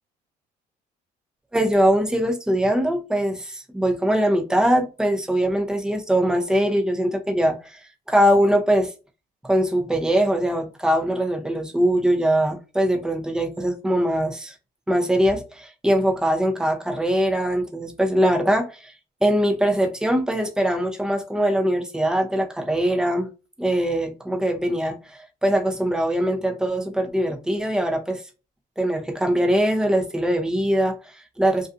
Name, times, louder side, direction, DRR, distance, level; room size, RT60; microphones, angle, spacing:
voice 1, 1.5-8.9 9.4-14.5 14.9-18.9 19.2-23.3 23.6-28.2 28.8-31.7, equal, 5° right, 0.5 m, -22 dB
2.5 x 2.3 x 2.4 m
cardioid pair, 110°, 17 cm